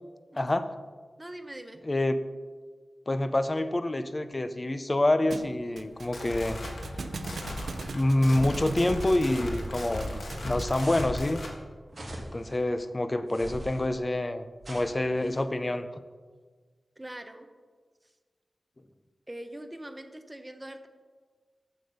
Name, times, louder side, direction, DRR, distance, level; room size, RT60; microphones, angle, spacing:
voice 1, 0.4-0.7 1.9-2.2 3.1-6.6 7.9-11.4 12.3-15.9, left 1 dB, 25° left, 10 dB, 0.5 m, -27 dB
voice 2, 1.2-1.8 17.0-17.5 19.3-20.9, right 1 dB, 15° right, 7 dB, 0.7 m, -42 dB
Thump thud, 5.3-10.9, right 4 dB, 75° right, 0.4 m, -41 dB
sound 1, 5.9-11.6, left 1 dB, 70° left, 1.4 m, -37 dB
sound 2, 10.8-11.3 11.9-12.6 13.3-13.9 14.6-15.4, right 1 dB, 45° right, 2.1 m, -41 dB
7.7 x 6.9 x 5.4 m, 1.5 s
wide cardioid pair, 95°, 0 cm